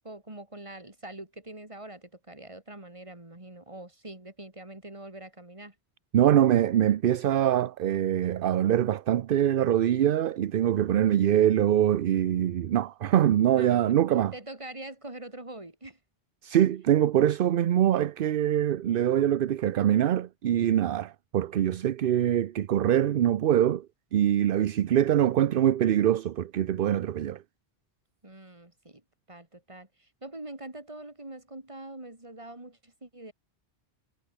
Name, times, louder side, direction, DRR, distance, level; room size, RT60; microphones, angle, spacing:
voice 1, 0.0-5.7 13.5-14.0 14.3-16.0 28.2-29.0 29.3-33.3, right 1 dB, 30° right, 3.2 m, -44 dB
voice 2, 6.1-14.3 16.4-23.9 24.1-27.4, right 11 dB, 60° right, 0.7 m, -24 dB
omnidirectional pair, 1.1 m